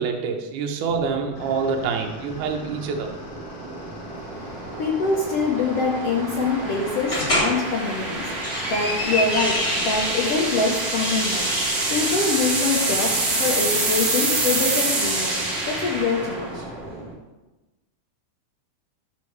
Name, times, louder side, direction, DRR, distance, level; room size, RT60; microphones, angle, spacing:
voice 1, 0.0-3.1, right 5 dB, 75° right, 3 dB, 2.3 m, -26 dB
sound 1, 0.9-17.1, right 2 dB, 40° right, 1.4 m, -27 dB
sound 2, 1.3-10.3, left 2 dB, 80° left, 3.5 m, -45 dB
voice 2, 4.1-17.0, left 4 dB, 65° left, -2 dB, 1.7 m, -25 dB
sound 3, 7.1-7.5 8.2-10.4 10.9-12.2, left 1 dB, 25° left, 1.4 m, -27 dB
11.5 x 6.8 x 3.3 m, 1.1 s
omnidirectional pair, 3.7 m